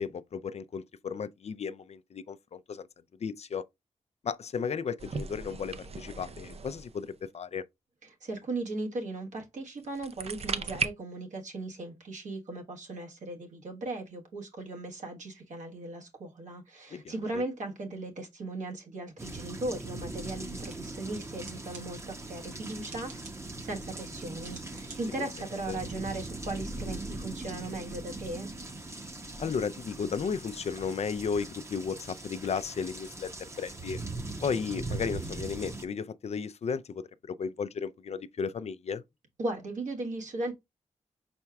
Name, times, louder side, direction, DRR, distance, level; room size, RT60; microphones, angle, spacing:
voice 1, 0.0-2.9 3.2-3.7 4.2-7.6 16.9-17.4 25.2-25.3 25.7-25.8 29.4-33.3 33.6-34.0 34.4-39.0, left 6 dB, 55° left, 0.4 m, -34 dB
sound 1, 5.0-7.2 9.8-10.9, right 5 dB, 50° right, 0.6 m, -36 dB
voice 2, 8.2-23.2 23.6-28.5 39.4-40.5, right 2 dB, 70° right, 1.3 m, -37 dB
sound 2, 19.2-35.9, right 2 dB, 20° right, 0.8 m, -40 dB
sound 3, 20.5-26.6, right 4 dB, 90° right, 1.2 m, -55 dB
4.5 x 4.3 x 2.3 m
cardioid pair, 45°, 13 cm